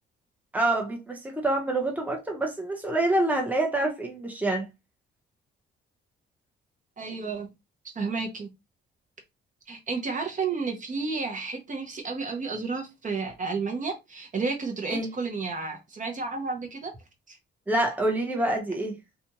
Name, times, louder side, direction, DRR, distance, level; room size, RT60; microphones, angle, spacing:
voice 1, 0.5-4.7 14.9-15.1 17.7-19.0, right 2 dB, 10° right, 0.9 m, -26 dB
voice 2, 7.0-7.5 7.8-8.5 9.7-16.9 17.3-17.4, right 4 dB, 40° right, 0.8 m, -31 dB
2.5 x 2.3 x 3.0 m
cardioid pair, 90°, 20 cm